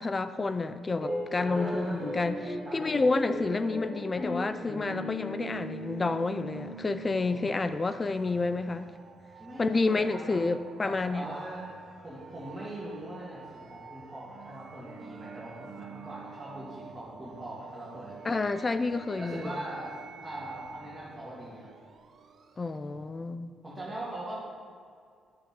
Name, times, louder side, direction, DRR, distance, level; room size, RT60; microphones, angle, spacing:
voice 1, 0.0-8.9 9.6-11.3 18.2-19.4 22.6-23.5, left 3 dB, 30° left, 11 dB, 0.4 m, -29 dB
sound 1, 1.0-7.5, equal, 55° left, 2.5 m, -37 dB
voice 2, 1.3-2.3 2.6-3.0 7.2-7.5 9.4-10.4 10.8-11.7 12.0-18.1 19.2-19.9 20.2-21.7 23.6-24.3, right 1 dB, 10° right, -9 dB, 2.3 m, -41 dB
sound 2, 5.4-22.9, right 6 dB, 55° right, 0.7 m, -50 dB
10.5 x 7.0 x 3.8 m, 2.2 s
cardioid pair, 90°, 0 cm